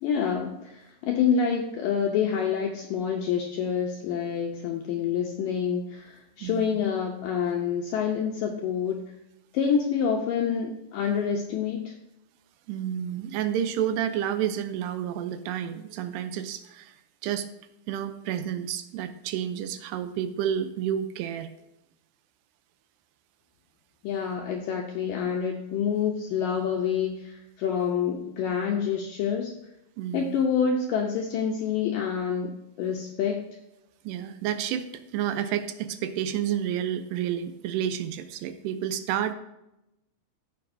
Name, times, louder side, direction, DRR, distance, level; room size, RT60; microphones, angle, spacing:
voice 1, 0.0-9.0 9.5-11.9 24.0-29.6 30.1-33.4, left 7 dB, 80° left, 1 dB, 2.0 m, -27 dB
voice 2, 6.4-6.8 12.7-16.9 17.2-17.5 17.9-21.5 30.0-30.4 34.0-39.3, right 10 dB, 85° right, 9 dB, 2.7 m, -30 dB
15.0 x 6.8 x 2.6 m, 0.88 s
omnidirectional pair, 4.8 m